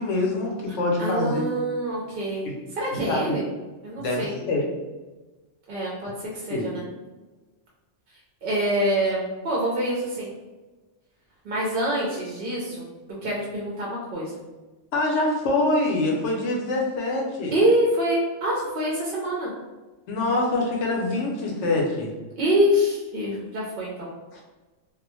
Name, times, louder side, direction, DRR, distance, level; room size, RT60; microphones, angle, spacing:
voice 1, 0.0-1.5 2.4-2.5 3.1-3.4 3.9-4.6 6.5-6.7 14.9-17.5 20.1-22.1 24.3-24.4, left 2 dB, 75° left, -1 dB, 0.9 m, -25 dB
voice 2, 1.0-3.4 3.8-4.3 5.7-6.1 6.4-6.8 8.4-10.3 11.4-12.9 13.2-14.4 17.5-19.5 22.4-24.1, equal, 60° right, -4 dB, 0.7 m, -25 dB
2.3 x 2.1 x 3.0 m, 1.2 s
omnidirectional pair, 1.3 m